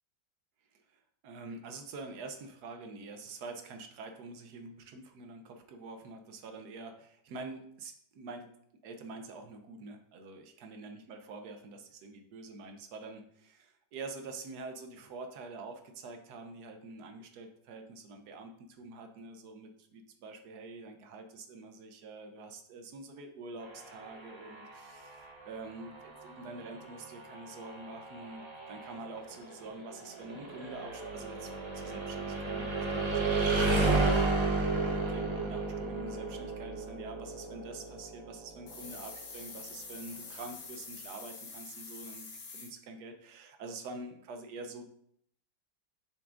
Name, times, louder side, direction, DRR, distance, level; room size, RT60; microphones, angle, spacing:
voice 1, 0.7-8.5 8.8-34.3 34.6-42.3 42.5-44.9, right 3 dB, 65° right, 6 dB, 1.2 m, -46 dB
sound 1, 23.6-39.4, right 3 dB, 35° right, 0.4 m, -34 dB
sound 2, 38.7-42.7, left 4 dB, 80° left, 1.9 m, -46 dB
6.9 x 6.0 x 2.5 m, 0.69 s
omnidirectional pair, 2.0 m